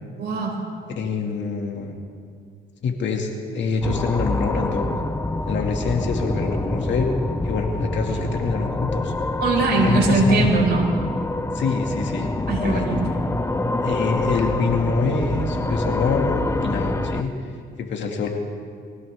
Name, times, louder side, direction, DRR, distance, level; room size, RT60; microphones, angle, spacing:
voice 1, 0.2-0.6 8.1-8.2 9.4-10.9 12.5-13.2, right 3 dB, 55° right, -2 dB, 5.2 m, -21 dB
voice 2, 1.0-2.0 2.8-4.9 5.5-7.1 7.4-9.1 9.8-10.5 11.5-12.3 12.6-12.9 13.8-17.3 17.8-18.3, left 5 dB, 65° left, 2 dB, 2.3 m, -25 dB
sound 1, 3.8-17.2, left 2 dB, 15° left, 0.7 m, -26 dB
23.5 x 16.5 x 3.6 m, 2.2 s
cardioid pair, 90°, 20 cm